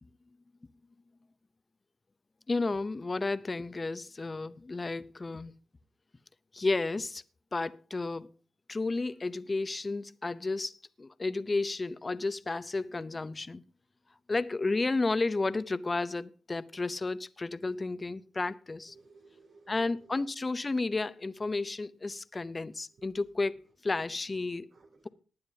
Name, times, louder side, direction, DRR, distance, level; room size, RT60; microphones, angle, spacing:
voice 1, 2.5-5.5 6.5-7.2 7.5-8.3 8.7-13.6 14.3-18.9 19.7-23.5 23.8-24.7, left 3 dB, 30° left, 0.7 m, -32 dB
voice 2, 18.9-20.3 22.9-23.1 23.6-23.7 24.5-25.1, right 3 dB, 70° right, 3.3 m, -59 dB
19.5 x 9.5 x 2.8 m
cardioid pair, 65°, 0 cm